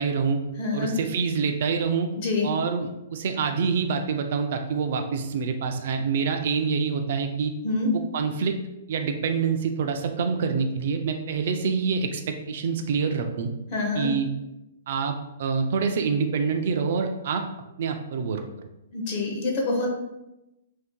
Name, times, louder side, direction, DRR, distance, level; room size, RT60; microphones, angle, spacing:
voice 1, 0.0-0.4 0.7-2.1 2.4-7.5 7.9-8.6 8.9-13.5 13.9-14.3 14.9-17.5 17.8-18.4, right 5 dB, 40° right, 5 dB, 0.3 m, -26 dB
voice 2, 0.6-0.9 2.2-2.5 7.6-7.9 13.7-14.1 18.9-19.9, left 3 dB, 30° left, -1 dB, 0.5 m, -26 dB
2.6 x 2.5 x 3.6 m, 0.91 s
hypercardioid pair, 175°, 0 cm